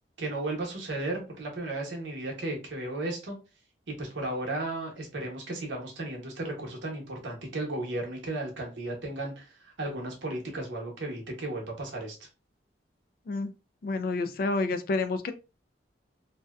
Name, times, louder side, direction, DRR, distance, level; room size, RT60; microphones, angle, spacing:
voice 1, 0.2-3.3 3.9-12.2, right 2 dB, 85° right, 0.8 m, -34 dB
voice 2, 13.8-15.3, left 3 dB, 50° left, 0.3 m, -29 dB
2.7 x 2.1 x 2.2 m
head